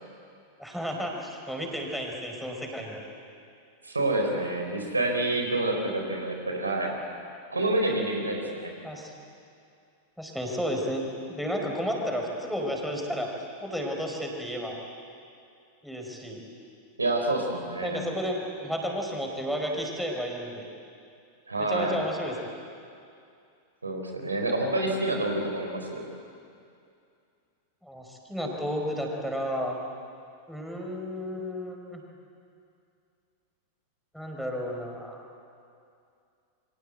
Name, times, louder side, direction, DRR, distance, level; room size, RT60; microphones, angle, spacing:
voice 1, 0.6-3.0 8.8-9.1 10.2-13.3 13.6-14.8 15.8-16.4 17.8-20.7 21.6-22.5 27.8-29.8 30.5-32.0 34.1-35.2, equal, ahead, 0 dB, 5.1 m, -32 dB
voice 2, 3.8-7.0 7.5-8.7 17.0-18.0 21.5-22.0 23.8-26.1, right 2 dB, 80° right, 3 dB, 4.2 m, -28 dB
28.5 x 25.0 x 8.0 m, 2.5 s
figure-of-eight pair, 90°, 0 cm